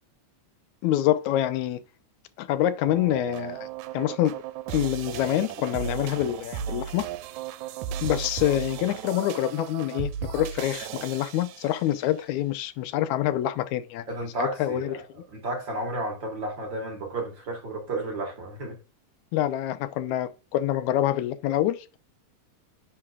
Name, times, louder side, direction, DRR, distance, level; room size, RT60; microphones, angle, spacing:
voice 1, 0.8-1.8 2.4-3.7 3.9-4.4 4.7-7.1 8.0-14.1 14.4-15.0 19.3-22.0, left 13 dB, 85° left, 2.0 m, -26 dB
sound 1, 2.8-12.1, right 9 dB, 90° right, 2.0 m, -35 dB
voice 2, 14.1-15.0 15.3-18.8, right 2 dB, 45° right, 2.2 m, -32 dB
9.6 x 4.6 x 2.3 m
omnidirectional pair, 3.3 m